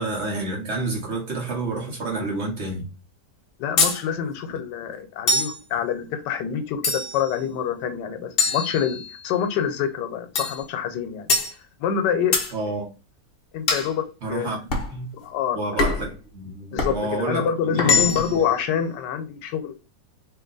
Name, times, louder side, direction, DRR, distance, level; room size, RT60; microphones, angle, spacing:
voice 1, 0.0-2.8 12.5-12.9 14.2-14.6 14.9-15.1 15.5-18.2, right 2 dB, 45° right, 1.1 m, -29 dB
voice 2, 3.6-11.3 11.8-12.4 13.5-14.0 14.3-14.5 15.2-15.6 16.7-19.7, left 8 dB, 90° left, 1.3 m, -26 dB
sound 1, 3.8-4.0 5.3-5.6 6.8-7.3 8.4-9.3 10.4-10.6 11.3-11.5 12.3-12.5 13.7-13.9 14.7-14.9 15.8-16.1 16.8-17.0 17.8-18.4, left 3 dB, 50° left, 0.7 m, -23 dB
2.8 x 2.7 x 3.8 m
omnidirectional pair, 1.8 m